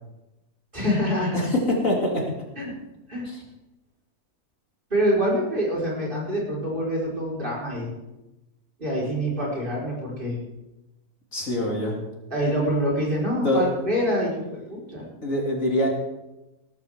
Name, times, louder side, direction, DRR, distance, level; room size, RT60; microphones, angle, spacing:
voice 1, 0.7-1.5 2.6-2.7 3.1-3.3 4.9-7.9 8.8-10.4 12.3-15.1, equal, 35° right, -4 dB, 4.7 m, -25 dB
voice 2, 1.3-2.2 11.3-12.0 13.4-13.6 15.2-15.9, left 1 dB, 55° left, -1 dB, 3.0 m, -24 dB
18.5 x 13.0 x 3.6 m, 0.99 s
omnidirectional pair, 1.6 m